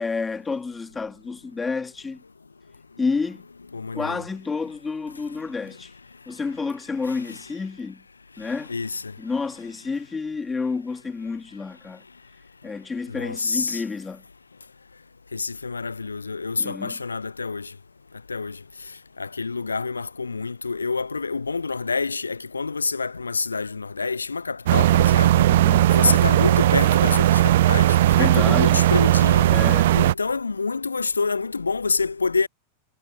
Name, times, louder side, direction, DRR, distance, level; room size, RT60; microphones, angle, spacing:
voice 1, 0.0-2.2 3.0-3.4 3.9-5.9 6.3-8.0 8.4-8.7 9.2-12.0 12.6-14.2 16.6-17.0 25.5-25.9 28.1-28.8 29.5-29.9, left 4 dB, 15° left, 2.1 m, -30 dB
voice 2, 3.7-4.2 7.1-7.4 8.4-9.2 13.1-13.8 15.3-17.7 18.3-18.9 19.2-25.5 25.9-29.5 29.9-32.5, left 4 dB, 75° left, 0.6 m, -27 dB
sound 1, 24.7-30.1, right 14 dB, 55° right, 0.4 m, -17 dB
figure-of-eight pair, 90°, 0 cm